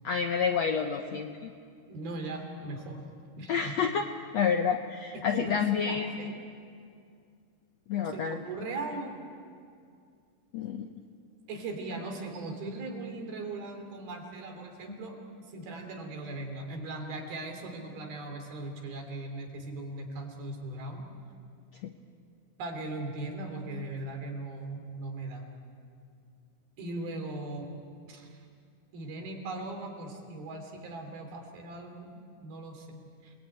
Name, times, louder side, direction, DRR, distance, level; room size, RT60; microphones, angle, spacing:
voice 1, 0.0-1.5 3.5-4.1 4.3-6.3 7.9-8.5 10.5-10.9 21.8-21.9, left 6 dB, 75° left, 5 dB, 1.6 m, -29 dB
voice 2, 1.9-3.0 3.4-3.8 5.1-6.3 8.0-9.2 11.5-15.2 15.4-21.1 22.6-25.4 26.8-27.7 28.1-28.4 28.9-33.3, right 2 dB, 80° right, 3 dB, 5.1 m, -39 dB
28.0 x 21.0 x 9.2 m, 2.3 s
omnidirectional pair, 4.3 m